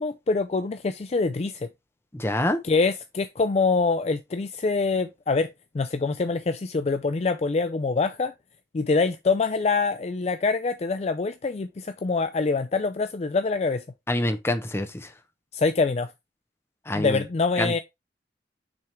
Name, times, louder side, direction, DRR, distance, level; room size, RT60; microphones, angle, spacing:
voice 1, 0.0-1.7 2.6-5.5 5.7-8.3 8.7-13.8 15.5-16.1 16.9-17.8, left 4 dB, 35° left, 0.4 m, -25 dB
voice 2, 2.1-2.6 14.1-15.1 16.9-17.2 17.6-17.8, left 1 dB, 15° left, 0.8 m, -26 dB
6.1 x 3.6 x 4.4 m
head